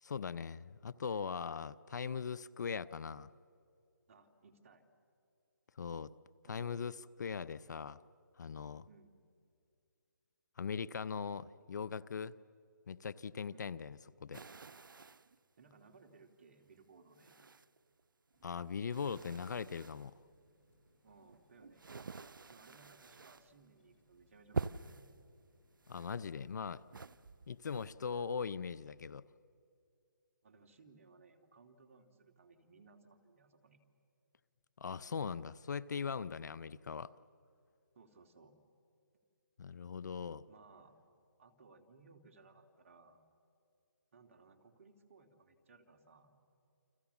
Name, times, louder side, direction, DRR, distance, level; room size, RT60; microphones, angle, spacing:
voice 1, 0.0-3.3 5.8-6.1 6.5-8.0 8.4-8.9 10.6-12.3 12.9-14.4 18.4-20.2 25.9-26.8 27.5-29.3 34.8-37.1 39.6-40.4, left 6 dB, 60° left, 19 dB, 0.7 m, -40 dB
voice 2, 4.1-4.8 6.5-6.8 8.8-9.2 13.5-13.9 15.6-17.3 21.0-21.9 22.5-25.0 30.4-33.8 36.6-36.7 37.9-38.6 40.5-41.0 41.4-43.2 44.1-46.3, right 4 dB, 45° right, 5 dB, 2.9 m, -62 dB
sound 1, 14.3-15.4 16.1-16.2 17.1-18.0 18.3-20.1 20.9-23.5 23.9-24.2 24.5-25.2 25.8-26.6 26.9-27.9, right 4 dB, 80° right, 0.8 m, -46 dB
Water tap faucet, 18.3-29.0, left 1 dB, 40° left, 6.8 m, -72 dB
29.5 x 25.5 x 7.2 m, 2.5 s
hypercardioid pair, 155°, 11 cm